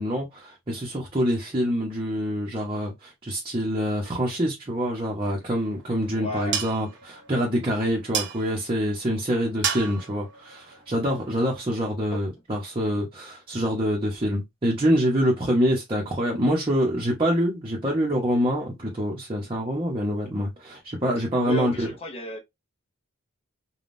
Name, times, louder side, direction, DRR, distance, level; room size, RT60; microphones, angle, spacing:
voice 1, 0.0-21.9, equal, 25° right, 0.8 m, -26 dB
sound 1, 5.3-11.8, right 8 dB, 55° right, 0.6 m, -35 dB
voice 2, 6.1-6.6 12.1-12.2 21.3-22.4, equal, 25° left, 0.6 m, -33 dB
3.5 x 2.3 x 2.5 m
head